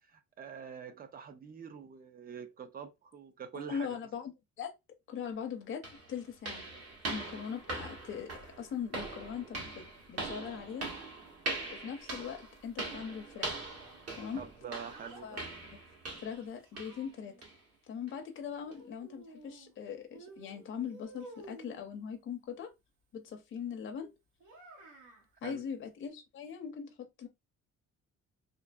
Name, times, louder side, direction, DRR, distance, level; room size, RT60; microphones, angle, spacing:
voice 1, 0.1-4.0 14.4-15.4 25.4-25.6, right 7 dB, 30° right, 0.4 m, -45 dB
voice 2, 3.5-4.3 4.6-4.7 5.1-6.6 7.1-9.7 10.1-10.9 11.7-13.5 14.1-14.4 15.2-15.5 15.7-15.8 16.2-17.3 17.9-22.7 23.1-24.1 25.4-27.3, left 7 dB, 40° left, 0.5 m, -40 dB
sound 1, 5.2-5.3 5.8-16.5 16.8-17.0 17.4-17.6 18.1-18.2 18.7-18.8, right 2 dB, 50° right, 1.1 m, -41 dB
Child speech kid speaking, 13.3-15.3 16.2-17.5 18.6-19.8 20.1-21.9 24.4-25.3, right 2 dB, 85° right, 0.9 m, -53 dB
2.6 x 2.5 x 2.2 m
cardioid pair, 165°, 31 cm